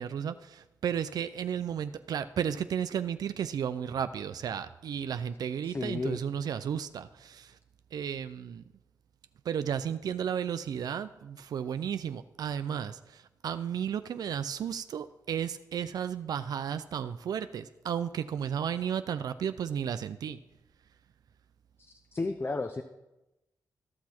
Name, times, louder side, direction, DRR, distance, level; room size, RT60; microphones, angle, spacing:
voice 1, 0.0-7.5 7.9-8.6 9.5-13.0 13.4-20.4, right 8 dB, 75° right, 12 dB, 0.4 m, -33 dB
voice 2, 5.6-6.2 22.1-22.8, left 3 dB, 35° left, 8 dB, 0.7 m, -32 dB
14.0 x 6.2 x 4.3 m, 0.99 s
supercardioid pair, 45°, 7 cm